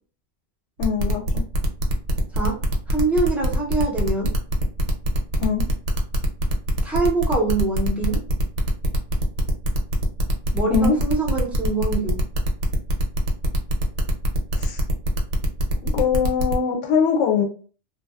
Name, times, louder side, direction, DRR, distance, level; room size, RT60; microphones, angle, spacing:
voice 1, 0.8-1.2 5.4-5.7 10.7-11.0 14.6-14.8 15.8-17.4, left 6 dB, 85° left, 2 dB, 0.9 m, -21 dB
sound 1, 0.8-16.6, equal, 75° right, 0.9 m, -23 dB
voice 2, 2.9-4.3 6.8-8.2 10.5-12.2, right 3 dB, ahead, -2 dB, 0.4 m, -24 dB
2.7 x 2.2 x 2.3 m, 0.40 s
omnidirectional pair, 1.2 m